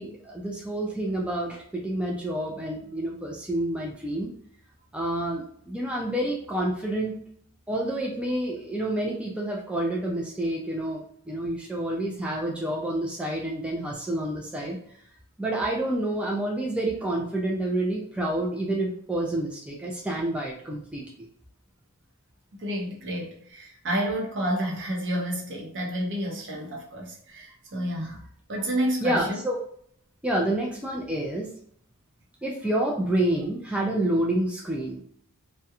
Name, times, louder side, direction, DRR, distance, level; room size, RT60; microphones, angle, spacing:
voice 1, 0.0-4.3 4.9-7.2 7.7-14.8 15.4-21.0 29.0-29.6 30.2-31.5 32.4-35.0, right 1 dB, 5° right, -2 dB, 0.3 m, -28 dB
voice 2, 22.5-28.2 28.5-29.4, equal, 55° right, -1 dB, 0.7 m, -30 dB
2.3 x 2.1 x 2.8 m, 0.63 s
head